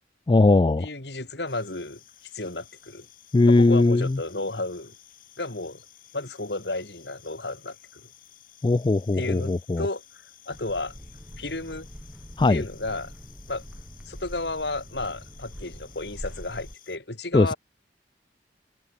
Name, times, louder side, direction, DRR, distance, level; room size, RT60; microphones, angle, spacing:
voice 1, 0.3-0.9 3.3-4.2 8.6-9.9 12.4-12.6 17.3-17.5, left 2 dB, 25° left, 0.3 m, -19 dB
voice 2, 0.8-2.0 2.3-3.1 3.5-4.9 5.4-5.8 6.1-8.0 9.2-10.0 10.4-10.9 11.4-11.9 12.5-13.1 13.5-13.6 14.0-17.6, left 2 dB, 70° left, 3.3 m, -32 dB
sound 1, 1.5-17.0, left 12 dB, 50° left, 7.2 m, -54 dB
sound 2, 10.5-16.8, equal, 5° right, 1.4 m, -43 dB
head